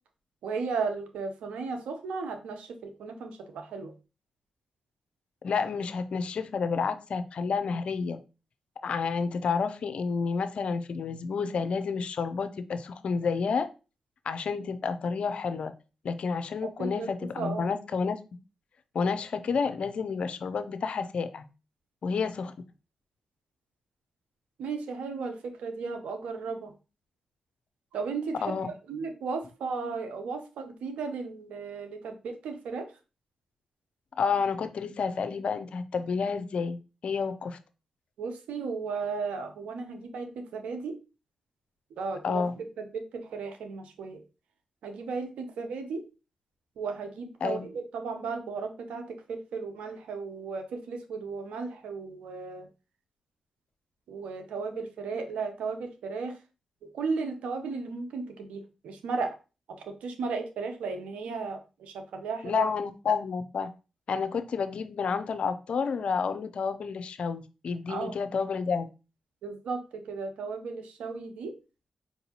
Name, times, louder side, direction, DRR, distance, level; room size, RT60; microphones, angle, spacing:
voice 1, 0.4-3.9 16.6-17.1 17.4-17.7 24.6-26.7 27.9-28.5 28.9-32.9 38.2-40.9 42.0-44.2 44.8-46.0 46.8-52.7 54.1-56.4 56.8-59.3 59.8-62.7 67.9-68.2 69.4-71.5, right 4 dB, 85° right, 5 dB, 0.7 m, -35 dB
voice 2, 5.4-8.2 8.8-13.7 14.2-15.7 16.0-18.2 18.9-21.5 22.0-22.5 28.4-28.7 34.2-36.8 37.0-37.6 42.2-42.5 47.4-47.7 62.4-63.7 64.1-68.9, left 5 dB, 65° left, 10 dB, 0.5 m, -30 dB
4.5 x 2.6 x 2.8 m, 0.31 s
supercardioid pair, 45°, 2 cm